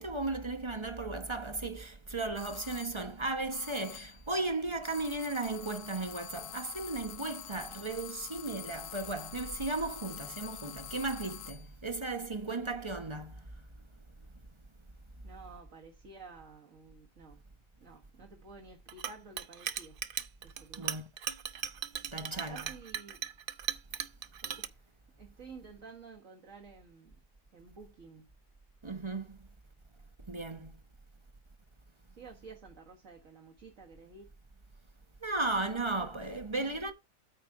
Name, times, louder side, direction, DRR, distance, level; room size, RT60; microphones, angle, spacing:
voice 1, 0.0-13.4 20.8-21.0 22.1-22.6 28.8-29.4 30.3-30.7 35.2-36.9, right 2 dB, 25° right, 0.8 m, -35 dB
sound 1, 2.4-3.1 3.5-4.3 4.8-11.7, left 13 dB, 70° left, 0.8 m, -47 dB
voice 2, 15.2-17.4 17.8-20.0 20.4-21.0 22.3-23.2 24.4-27.2 27.5-28.3 32.1-34.3, right 4 dB, 50° right, 1.8 m, -52 dB
Chink clink, 18.9-24.7, right 8 dB, 80° right, 0.4 m, -37 dB
8.9 x 5.1 x 4.8 m
omnidirectional pair, 1.8 m